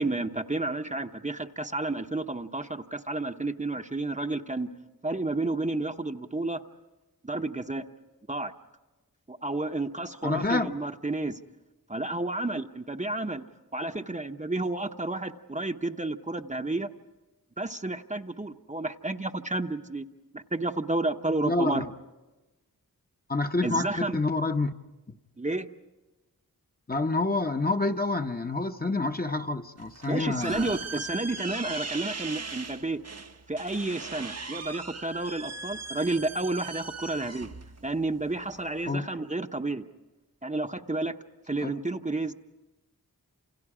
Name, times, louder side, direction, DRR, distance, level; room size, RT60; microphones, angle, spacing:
voice 1, 0.0-4.7 5.0-6.6 7.2-7.8 8.3-8.5 9.3-11.4 11.9-13.4 13.7-16.9 17.6-20.0 20.3-21.8 23.6-24.2 25.4-25.7 30.1-33.0 33.5-37.5 37.8-39.8 40.4-41.2 41.5-42.3, right 2 dB, 20° right, 0.8 m, -31 dB
voice 2, 10.2-10.8 21.4-21.9 23.3-24.7 26.9-30.7 38.9-39.1 41.6-41.7, left 2 dB, 25° left, 0.9 m, -28 dB
sound 1, 29.8-38.9, right 4 dB, 45° right, 0.9 m, -40 dB
29.5 x 28.0 x 4.9 m
wide cardioid pair, 70°, 36 cm